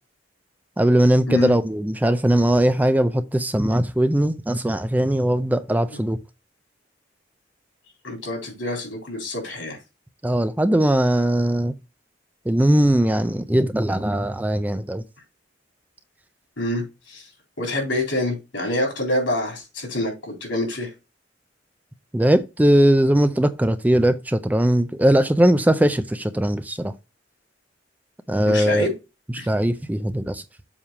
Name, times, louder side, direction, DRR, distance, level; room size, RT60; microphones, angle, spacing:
voice 1, 0.8-6.2 10.2-11.7 12.5-15.0 22.1-26.9 28.3-28.9 29.5-30.4, right 1 dB, 10° right, 0.4 m, -19 dB
voice 2, 8.0-9.8 16.6-17.3 17.6-20.9 28.5-28.9 29.3-29.5, left 1 dB, 80° left, 3.7 m, -26 dB
7.2 x 3.4 x 5.8 m
head